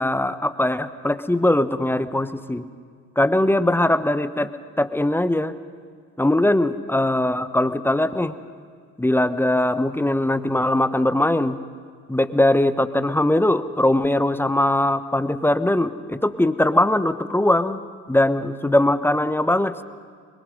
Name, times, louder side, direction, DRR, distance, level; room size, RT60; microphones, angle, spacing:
voice 1, 0.0-2.7 3.2-4.5 4.8-5.5 6.2-8.3 9.0-11.6 12.1-17.8 18.1-19.8, left 1 dB, 5° left, 13 dB, 1.1 m, -20 dB
26.0 x 22.5 x 5.3 m, 2.1 s
hypercardioid pair, 50°, 36 cm